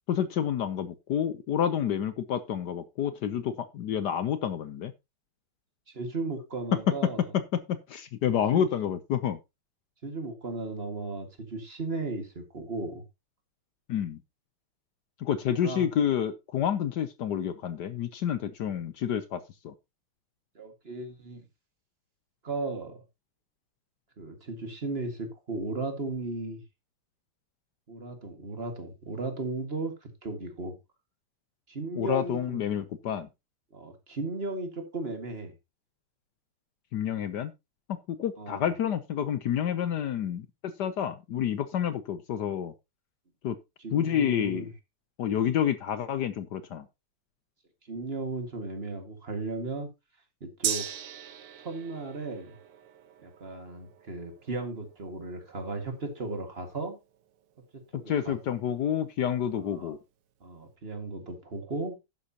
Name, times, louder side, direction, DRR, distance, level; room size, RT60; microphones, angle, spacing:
voice 1, 0.1-4.9 7.9-9.4 13.9-14.2 15.2-19.7 32.0-33.3 36.9-37.5 38.1-42.7 43.4-43.6 43.9-44.7 45.2-46.9 57.9-60.0, left 9 dB, 65° left, 1.1 m, -29 dB
voice 2, 5.9-7.3 8.5-8.6 10.0-13.0 15.5-15.9 20.6-21.4 22.4-23.0 24.2-26.6 27.9-30.8 31.7-32.6 33.7-35.5 38.4-38.7 43.8-44.7 47.9-49.9 50.4-50.9 51.6-52.6 53.2-57.0 57.7-58.4 59.6-59.9 60.4-62.0, right 3 dB, 30° right, 2.0 m, -36 dB
Gong, 50.6-58.4 58.7-58.8, right 10 dB, 75° right, 2.0 m, -40 dB
11.5 x 9.8 x 2.9 m
omnidirectional pair, 2.4 m